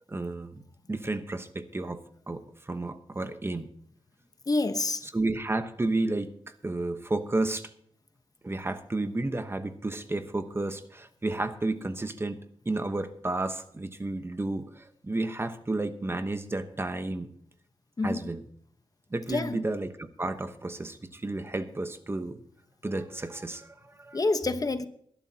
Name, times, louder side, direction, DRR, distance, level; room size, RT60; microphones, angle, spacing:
voice 1, 0.1-0.6 0.9-3.7 5.0-7.7 8.4-17.3 18.0-18.4 19.1-19.9 20.2-22.4 22.8-24.2, right 2 dB, 25° right, 9 dB, 1.0 m, -32 dB
voice 2, 4.5-5.1 18.0-18.3 19.3-19.6 24.1-24.8, left 3 dB, 35° left, 9 dB, 1.0 m, -27 dB
20.0 x 11.5 x 2.8 m, 0.64 s
wide cardioid pair, 130°, 10 cm